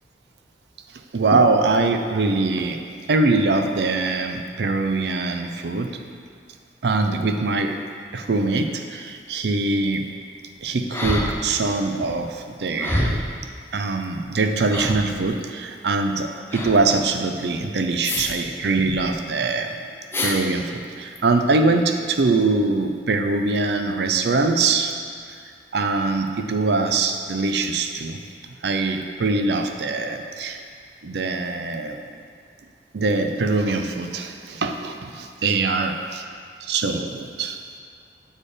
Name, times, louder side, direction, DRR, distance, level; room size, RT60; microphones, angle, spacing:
voice 1, 1.1-2.8 3.1-6.0 6.8-7.8 8.1-10.1 10.6-13.2 13.7-19.7 20.2-25.0 25.7-28.2 28.6-30.6 31.0-32.0 32.9-36.0 36.7-37.6, right 3 dB, 70° right, 6 dB, 0.5 m, -23 dB
sound 1, 10.9-11.7 12.0-12.1 12.8-13.4 14.3-14.4 14.7-15.3 16.5-16.8 18.0-18.4 18.6-19.0 20.1-20.4 21.2-21.3, left 1 dB, 15° left, 0.6 m, -26 dB
7.2 x 4.3 x 4.9 m, 2.2 s
head